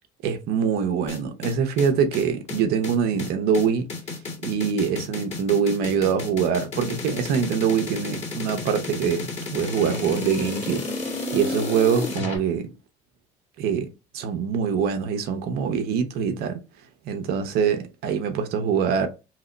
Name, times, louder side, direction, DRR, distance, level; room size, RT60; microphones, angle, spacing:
voice 1, 0.2-3.9 4.4-10.8 11.3-12.7 13.6-16.6 17.1-19.1, right 7 dB, 70° right, 0.6 m, -24 dB
sound 1, 1.1-12.4, left 3 dB, 40° left, 1.7 m, -32 dB
2.9 x 2.0 x 3.8 m
supercardioid pair, 90°, 17 cm